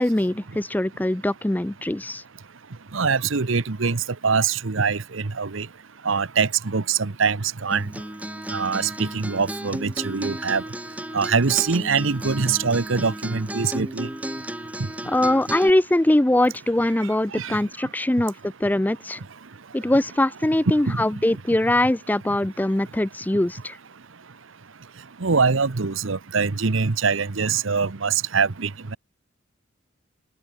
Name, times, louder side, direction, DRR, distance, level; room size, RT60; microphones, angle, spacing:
voice 1, 0.0-2.2 15.1-19.2 19.7-23.8, left 1 dB, 10° left, 0.4 m, -22 dB
voice 2, 2.9-5.7 6.0-7.8 8.5-10.6 11.1-14.1 17.3-17.6 20.9-21.0 25.2-29.0, right 5 dB, 65° right, 0.9 m, -23 dB
Acoustic guitar, 7.7-15.7, right 1 dB, 5° right, 1.9 m, -34 dB
open air
head